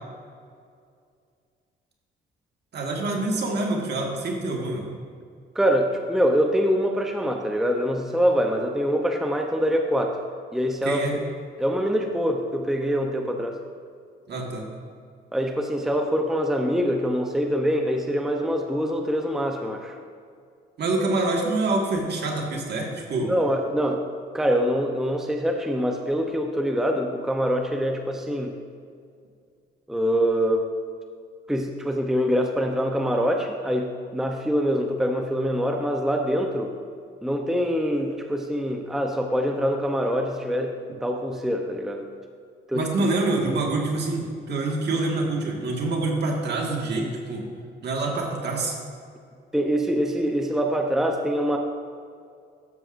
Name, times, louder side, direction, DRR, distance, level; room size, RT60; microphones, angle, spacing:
voice 1, 2.7-4.8 10.8-11.1 14.3-14.6 20.8-23.3 42.7-47.4 47.8-48.8, right 2 dB, 55° right, 0 dB, 1.7 m, -26 dB
voice 2, 5.6-10.2 10.5-11.0 11.6-13.5 15.3-20.0 23.3-24.0 24.3-28.6 29.9-30.7 31.5-36.7 37.2-40.8 41.0-42.1 42.7-43.1 49.5-51.6, equal, ahead, 3 dB, 0.6 m, -24 dB
12.5 x 7.3 x 2.6 m, 2.2 s
cardioid pair, 90°, 20 cm